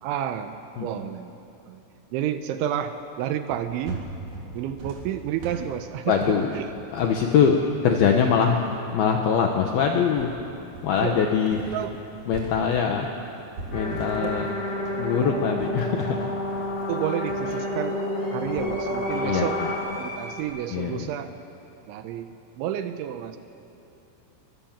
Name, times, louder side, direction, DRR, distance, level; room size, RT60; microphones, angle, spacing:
voice 1, 0.0-1.3 1.7-1.8 2.1-4.1 4.5-6.7 7.3-7.4 8.3-8.4 10.6-10.7 11.0-11.2 11.7-11.9 14.2-14.3 16.9-18.0 18.3-19.6 20.0-21.3 21.9-23.4, right 10 dB, 80° right, 9 dB, 2.9 m, -30 dB
sound 1, 3.5-11.7 12.0-20.8, right 2 dB, 40° right, 4.3 m, -41 dB
voice 2, 6.1-6.5 6.9-7.6 7.8-8.6 8.9-10.3 10.8-11.8 12.3-13.1 13.7-14.5 15.0-16.3 19.1-19.5 20.7-21.1, left 7 dB, 75° left, 2 dB, 2.2 m, -23 dB
sound 2, 9.9-10.1 11.3-11.9 14.0-14.9 15.2-20.4, left 1 dB, 25° left, 2.7 m, -44 dB
sound 3, 13.7-19.8, left 1 dB, 45° left, 5.8 m, -29 dB
24.0 x 21.5 x 7.4 m, 2.9 s
omnidirectional pair, 5.9 m